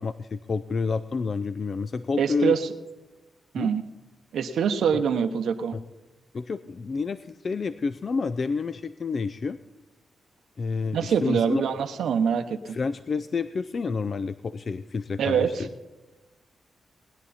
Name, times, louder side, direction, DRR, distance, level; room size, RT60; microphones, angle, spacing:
voice 1, 0.0-2.6 3.6-3.7 5.7-5.8 6.3-9.6 10.6-11.6 12.7-15.7, left 4 dB, 50° left, 13 dB, 0.4 m, -29 dB
voice 2, 2.2-2.7 3.5-3.8 4.3-5.8 10.9-12.8 15.2-15.7, right 7 dB, 85° right, 8 dB, 0.9 m, -24 dB
19.5 x 10.5 x 4.2 m, 1.1 s
cardioid pair, 90°, 0 cm